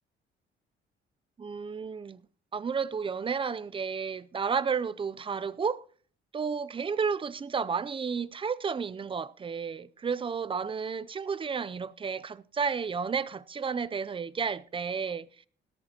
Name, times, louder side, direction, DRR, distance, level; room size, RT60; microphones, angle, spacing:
voice 1, 1.4-2.2 2.5-5.8 6.3-15.3, right 6 dB, 25° right, 0.5 m, -32 dB
17.5 x 13.0 x 3.0 m
cardioid pair, 90°, 20 cm